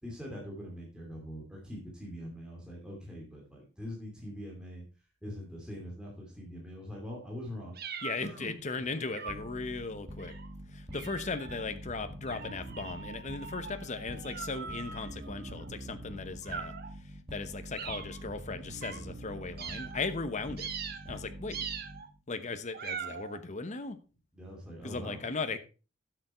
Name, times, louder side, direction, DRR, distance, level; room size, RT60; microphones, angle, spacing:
voice 1, 0.0-4.8 5.2-7.8 8.2-8.5 8.8-8.9 10.9-11.2 24.3-25.3, equal, 5° right, 2.6 m, -43 dB
sound 1, 7.8-8.5 9.1-9.6 10.2-10.5 10.9-11.6 12.2-15.7 16.4-16.9 17.7-18.2 18.8-19.0 19.6-20.1 20.6-21.2 21.5-22.1 22.7-23.4, right 7 dB, 55° right, 1.2 m, -42 dB
voice 2, 8.0-10.3 10.7-16.7 17.3-20.7 21.0-21.6 22.3-24.0 24.8-25.6, left 4 dB, 40° left, 1.0 m, -37 dB
sound 2, 9.3-22.2, right 1 dB, 30° right, 1.5 m, -45 dB
12.0 x 6.9 x 4.3 m
head